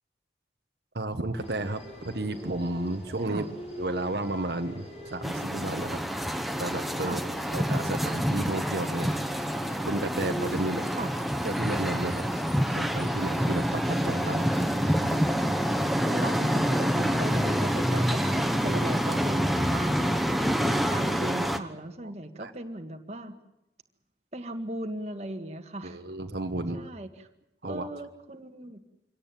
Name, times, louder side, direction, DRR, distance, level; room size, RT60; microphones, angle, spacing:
voice 1, 0.9-3.4 3.8-6.0 6.6-7.2 7.5-9.1 9.8-10.9 11.4-12.2 12.7-14.5 18.7-18.8 22.4-22.5 25.8-26.8 27.6-27.9, right 2 dB, 70° right, 6 dB, 1.3 m, -32 dB
sound 1, 1.3-18.5, equal, 40° left, 6.4 m, -45 dB
sound 2, 5.2-21.6, equal, ahead, 1.0 m, -27 dB
voice 2, 16.1-20.2 20.7-23.4 24.3-26.0 26.7-27.3 27.6-28.8, right 1 dB, 40° right, 5 dB, 1.8 m, -37 dB
24.5 x 17.5 x 9.1 m, 0.85 s
head